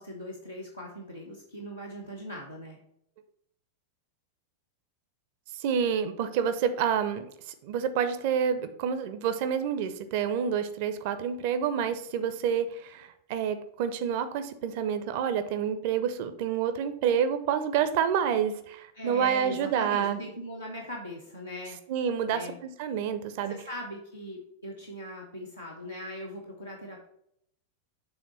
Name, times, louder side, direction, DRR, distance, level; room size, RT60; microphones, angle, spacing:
voice 1, 0.0-2.8 18.9-21.8 22.3-22.6 23.5-27.1, equal, 85° left, -3 dB, 1.0 m, -40 dB
voice 2, 5.5-20.2 21.9-23.5, right 8 dB, 50° right, 10 dB, 0.5 m, -28 dB
6.9 x 3.6 x 5.3 m, 0.75 s
figure-of-eight pair, 90°, 0 cm